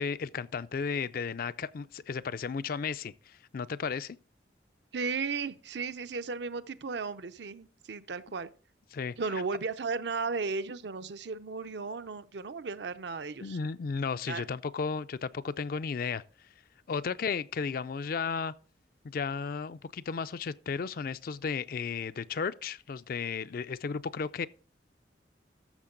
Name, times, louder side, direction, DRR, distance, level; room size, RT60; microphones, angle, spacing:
voice 1, 0.0-4.2 8.9-9.2 13.4-16.2 16.9-18.5 19.0-24.5, left 5 dB, 50° left, 0.4 m, -34 dB
voice 2, 4.9-8.5 9.2-13.6 14.3-14.5, right 4 dB, 70° right, 0.6 m, -35 dB
13.5 x 6.6 x 3.8 m
head